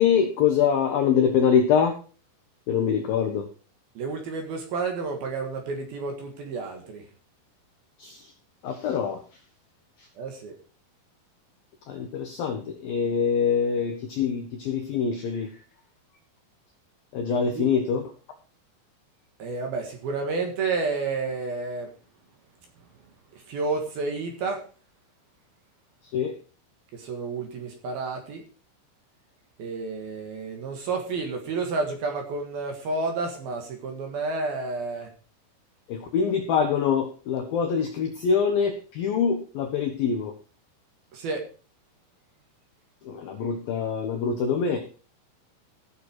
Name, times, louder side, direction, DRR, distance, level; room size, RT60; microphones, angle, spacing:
voice 1, 0.0-2.0 2.7-3.5 8.0-8.2 8.6-9.2 11.9-15.5 17.1-18.0 26.1-26.3 35.9-40.3 43.1-44.8, left 7 dB, 75° left, 4 dB, 2.2 m, -24 dB
voice 2, 3.9-7.0 10.2-10.6 17.3-17.7 19.4-21.9 23.5-24.7 26.9-28.4 29.6-35.1 41.1-41.5, right 3 dB, 60° right, 4 dB, 3.0 m, -30 dB
16.0 x 6.7 x 4.7 m, 0.37 s
omnidirectional pair, 5.8 m